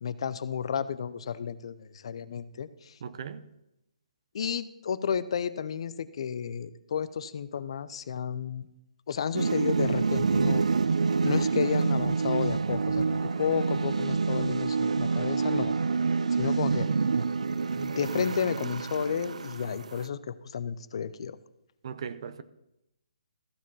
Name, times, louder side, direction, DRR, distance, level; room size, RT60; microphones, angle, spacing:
voice 1, 0.0-2.9 4.3-8.7 9.1-10.6 11.2-15.7 16.4-16.9 17.8-21.4, left 7 dB, 55° left, 15 dB, 0.6 m, -32 dB
voice 2, 3.0-3.5 21.8-22.4, right 7 dB, 50° right, 13 dB, 0.7 m, -38 dB
sound 1, 9.3-20.0, right 4 dB, 75° right, 0.4 m, -27 dB
Laughter / Clapping / Crowd, 12.5-17.2 17.6-18.1 18.7-18.8, right 2 dB, 20° right, 1.9 m, -58 dB
14.5 x 5.1 x 5.5 m, 0.88 s
hypercardioid pair, 150°, 4 cm